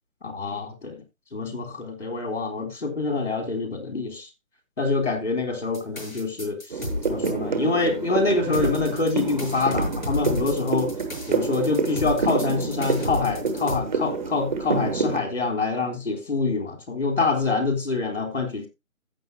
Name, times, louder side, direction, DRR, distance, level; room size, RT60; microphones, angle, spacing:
voice 1, 0.2-1.0 1.3-4.3 4.8-6.6 7.1-10.9 11.3-18.7, left 3 dB, 60° left, 3.8 m, -26 dB
sound 1, 5.7-7.3 8.5-13.8, left 1 dB, 85° left, 7.7 m, -32 dB
sound 2, 6.7-15.2, right 4 dB, 35° right, 1.5 m, -28 dB
14.5 x 7.6 x 3.0 m
figure-of-eight pair, 150°, 40 cm